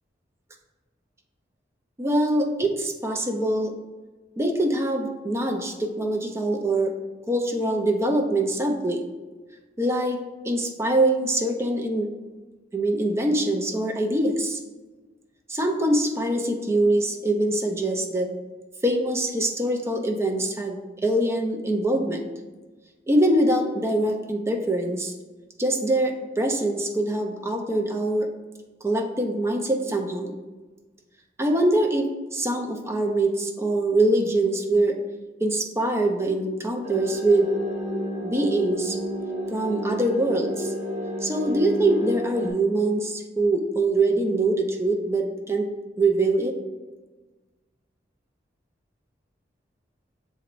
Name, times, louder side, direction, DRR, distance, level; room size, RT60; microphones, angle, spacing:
voice 1, 2.0-3.8 4.4-7.0 7.3-9.0 9.8-10.2 10.4-12.1 12.7-14.6 15.5-18.3 18.8-22.3 23.1-25.1 25.6-28.3 28.8-30.3 31.4-35.0 35.4-37.5 38.2-39.0 39.5-40.7 41.2-45.7 46.0-46.6, right 1 dB, 15° right, 3 dB, 0.5 m, -23 dB
sound 1, 36.8-42.5, equal, 40° right, 1.2 m, -31 dB
7.0 x 3.0 x 2.5 m, 1.2 s
head